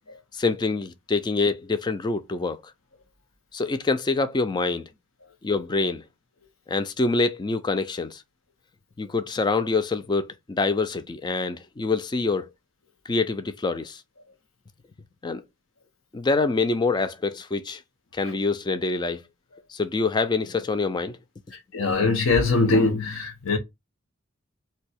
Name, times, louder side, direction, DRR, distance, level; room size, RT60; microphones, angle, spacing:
voice 1, 0.3-2.6 3.5-4.9 5.4-6.0 6.7-8.2 9.0-12.5 13.1-14.0 15.2-15.4 16.1-17.8 18.1-19.3 19.7-21.2, left 3 dB, 20° left, 0.3 m, -25 dB
voice 2, 21.5-23.6, left 3 dB, 85° left, 0.8 m, -22 dB
2.6 x 2.2 x 4.1 m
head